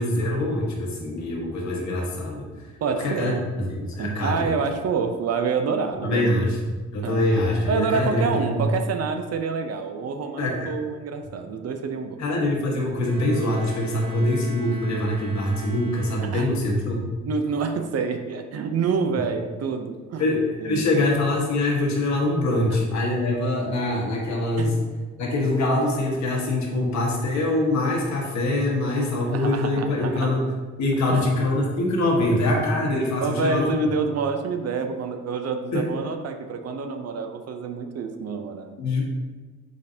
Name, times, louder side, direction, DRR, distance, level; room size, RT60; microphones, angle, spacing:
voice 1, 0.0-2.7 3.0-4.5 6.0-8.6 10.4-10.7 12.2-17.0 20.2-24.8 25.2-30.4 30.8-33.7 35.7-35.8 38.8-39.0, left 1 dB, 65° left, -1 dB, 1.6 m, -24 dB
voice 2, 2.8-3.4 4.0-6.3 7.0-7.2 7.7-12.2 16.2-16.5 17.3-20.3 20.6-20.9 24.6-24.8 29.0-30.3 31.1-31.3 32.2-32.3 33.2-38.9, right 5 dB, 55° right, 6 dB, 0.7 m, -27 dB
Bowed string instrument, 13.0-16.8, equal, 15° right, 0.7 m, -39 dB
6.5 x 5.1 x 2.8 m, 1.3 s
cardioid pair, 90°, 30 cm